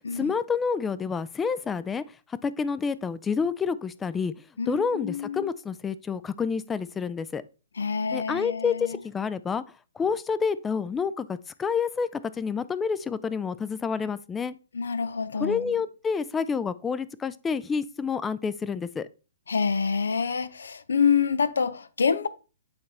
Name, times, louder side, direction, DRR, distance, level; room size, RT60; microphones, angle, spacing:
voice 1, 0.1-2.0 2.4-4.3 4.7-7.4 8.1-9.6 10.0-14.6 15.3-19.1, left 5 dB, 15° left, 0.4 m, -28 dB
voice 2, 4.6-5.5 7.8-9.0 14.7-15.7 19.5-22.3, left 6 dB, 80° left, 0.6 m, -27 dB
8.0 x 4.1 x 3.3 m
hypercardioid pair, 130°, 0 cm